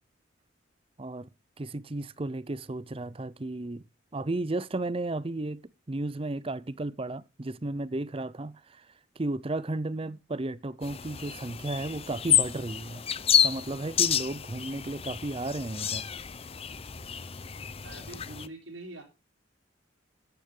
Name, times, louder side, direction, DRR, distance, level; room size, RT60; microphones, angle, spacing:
voice 1, 1.0-1.3 1.6-3.8 4.1-5.6 5.9-8.9 9.2-13.0 13.4-16.1, right 2 dB, 30° right, 0.6 m, -34 dB
sound 1, 10.8-18.5, left 9 dB, 30° left, 0.6 m, -29 dB
voice 2, 17.8-19.0, right 2 dB, 80° right, 4.0 m, -44 dB
13.5 x 9.3 x 3.8 m
head